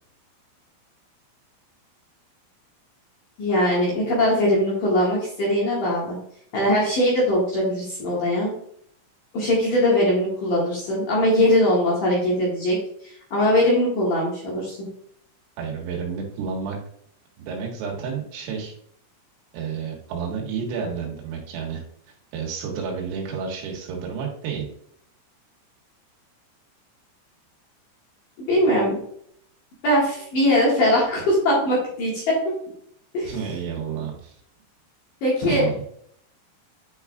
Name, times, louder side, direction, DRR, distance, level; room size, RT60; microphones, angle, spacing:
voice 1, 3.4-6.2 6.5-8.5 9.3-12.8 13.0-14.8 28.4-29.0 29.8-32.6 33.1-33.3 35.2-35.7, left 1 dB, 55° left, -5 dB, 2.7 m, -21 dB
voice 2, 15.6-16.8 17.4-18.7 19.5-21.8 22.3-24.7 33.2-34.3 35.4-35.8, right 6 dB, 80° right, -1 dB, 4.2 m, -30 dB
10.0 x 4.7 x 2.4 m, 0.65 s
omnidirectional pair, 5.9 m